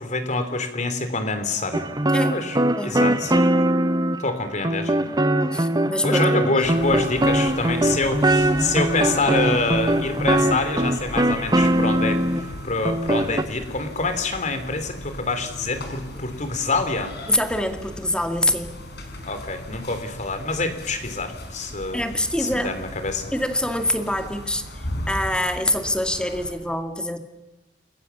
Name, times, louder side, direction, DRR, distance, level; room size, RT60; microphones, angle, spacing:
voice 1, 0.0-1.9 2.3-3.5 4.2-4.9 6.0-17.1 19.2-22.0 22.4-23.3, left 3 dB, 45° left, 9 dB, 3.4 m, -26 dB
sound 1, 1.7-4.3 4.6-12.5 12.8-13.4, right 1 dB, 20° right, 1.1 m, -21 dB
voice 2, 5.5-6.3 17.3-18.8 21.9-22.7 23.3-24.7 25.1-27.2, left 1 dB, 5° left, 7 dB, 2.1 m, -25 dB
sound 2, 6.6-26.5, left 1 dB, 65° left, 5.6 m, -37 dB
29.5 x 21.5 x 7.1 m, 1.1 s
head